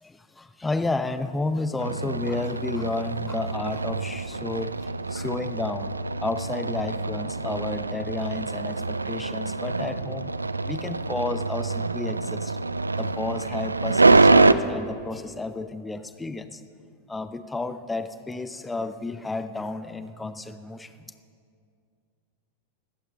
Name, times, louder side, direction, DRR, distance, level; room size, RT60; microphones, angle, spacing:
voice 1, 0.0-10.3 10.7-12.6 13.0-16.6 17.1-21.1, left 3 dB, 10° left, 11 dB, 0.7 m, -32 dB
sound 1, 1.8-14.5, right 3 dB, 80° right, 0.4 m, -25 dB
20.0 x 15.5 x 3.6 m, 2.3 s
figure-of-eight pair, 90°, 0 cm